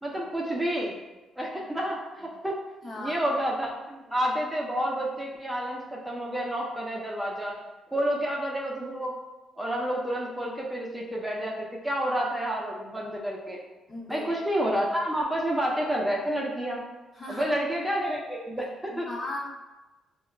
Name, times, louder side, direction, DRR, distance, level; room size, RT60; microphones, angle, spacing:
voice 1, 0.0-0.9 1.4-2.6 3.0-7.5 7.9-9.1 9.6-13.6 14.1-16.8 17.3-19.1, equal, 10° right, -3 dB, 0.5 m, -29 dB
voice 2, 2.8-3.2 13.9-14.3 17.2-17.5 18.9-19.4, left 2 dB, 45° left, -5 dB, 1.1 m, -37 dB
4.4 x 2.1 x 2.3 m, 1.1 s
supercardioid pair, 70°, 0 cm